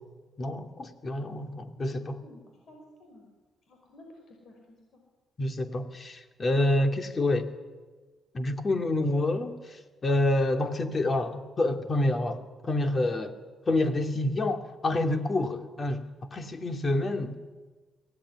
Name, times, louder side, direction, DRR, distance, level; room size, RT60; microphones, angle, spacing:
voice 1, 0.4-2.2 5.4-7.5 8.3-9.5 10.0-13.3 13.7-16.0 16.3-17.4, left 1 dB, 35° left, 6 dB, 2.6 m, -27 dB
voice 2, 2.7-3.3 3.7-5.0 9.0-9.3, left 2 dB, 60° left, 1 dB, 5.7 m, -49 dB
23.5 x 17.5 x 10.0 m, 1.3 s
cardioid pair, 90°, 0 cm